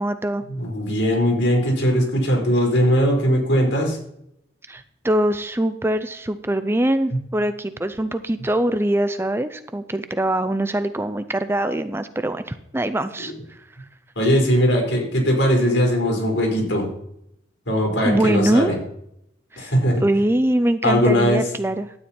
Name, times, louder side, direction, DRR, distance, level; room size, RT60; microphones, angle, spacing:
voice 1, 0.0-0.4 4.7-13.6 18.0-18.7 19.5-19.7 20.0-21.9, right 1 dB, 10° right, 11 dB, 0.5 m, -23 dB
voice 2, 0.5-4.0 14.2-16.9 17.7-18.8 19.6-20.0 20.8-21.4, equal, 80° left, 0 dB, 4.2 m, -19 dB
12.5 x 9.0 x 4.3 m, 0.76 s
head